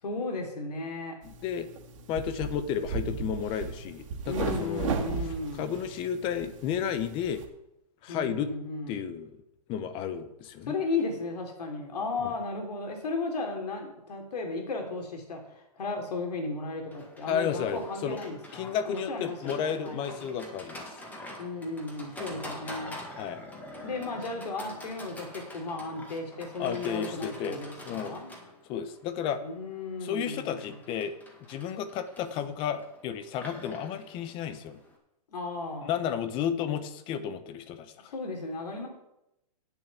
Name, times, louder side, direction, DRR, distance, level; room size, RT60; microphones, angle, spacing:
voice 1, 0.0-1.1 4.3-5.8 8.1-9.0 10.7-20.2 21.4-22.9 23.8-28.3 29.4-30.8 35.3-35.9 38.1-38.9, left 3 dB, 80° left, 3 dB, 3.6 m, -35 dB
voice 2, 1.2-1.7 2.1-5.0 5.5-7.4 8.0-8.5 8.9-9.3 9.7-10.7 12.2-12.3 17.3-18.2 18.5-20.9 23.2-23.4 26.6-27.6 27.8-28.2 28.7-29.4 30.0-31.2 31.5-34.8 35.8-38.1, left 8 dB, 25° left, 12 dB, 0.8 m, -32 dB
sound 1, 1.2-7.4, right 6 dB, 50° right, 2.1 m, -36 dB
Livestock farm animals working animals, 16.9-34.9, left 1 dB, 10° left, 1.8 m, -46 dB
9.0 x 7.1 x 8.3 m, 0.86 s
hypercardioid pair, 155°, 20 cm